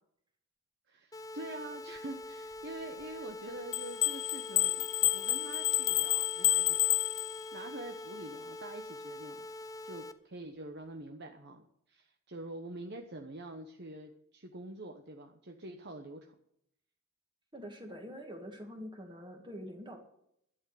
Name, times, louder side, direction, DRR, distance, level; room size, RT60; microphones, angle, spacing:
voice 1, 0.9-7.1 7.5-9.5 9.8-16.3, right 2 dB, 50° right, 4 dB, 1.1 m, -46 dB
sound 1, 1.1-10.1, left 2 dB, 15° left, 0.6 m, -45 dB
sound 2, 3.7-7.7, left 16 dB, 60° left, 0.6 m, -30 dB
voice 2, 17.5-20.0, equal, 20° right, 3 dB, 2.0 m, -45 dB
12.0 x 8.5 x 8.4 m, 0.73 s
head